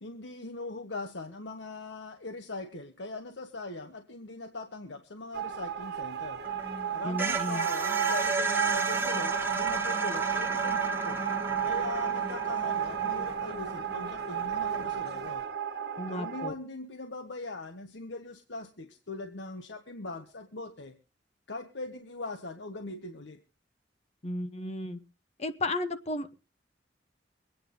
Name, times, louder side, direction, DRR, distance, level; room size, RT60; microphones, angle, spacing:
voice 1, 0.0-6.4 6.9-11.2 11.6-15.5 16.1-21.0 21.5-23.4, left 2 dB, 75° left, 6 dB, 1.2 m, -41 dB
sound 1, 5.3-16.5, right 9 dB, 65° right, 1.1 m, -33 dB
sound 2, 6.4-15.3, right 3 dB, 10° right, 1.1 m, -34 dB
voice 2, 7.0-7.7 16.0-16.5 24.2-25.0 25.4-26.3, left 1 dB, 35° left, 10 dB, 0.9 m, -33 dB
23.5 x 9.2 x 3.9 m, 0.31 s
head